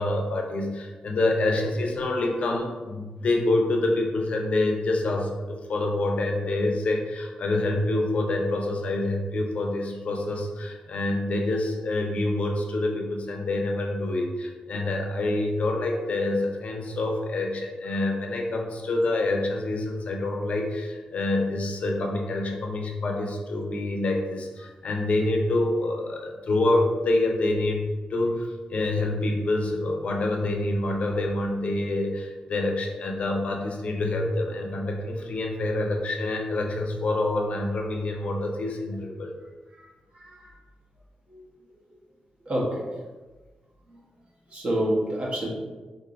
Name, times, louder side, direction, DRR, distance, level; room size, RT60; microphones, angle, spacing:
voice 1, 0.0-39.3, left 2 dB, 55° left, 1 dB, 0.5 m, -27 dB
voice 2, 40.1-40.5 41.3-41.4 42.5-42.8 43.9-44.0 44.5-45.5, right 1 dB, 50° right, -3 dB, 0.9 m, -27 dB
4.5 x 2.6 x 2.4 m, 1.3 s
wide cardioid pair, 110°, 3 cm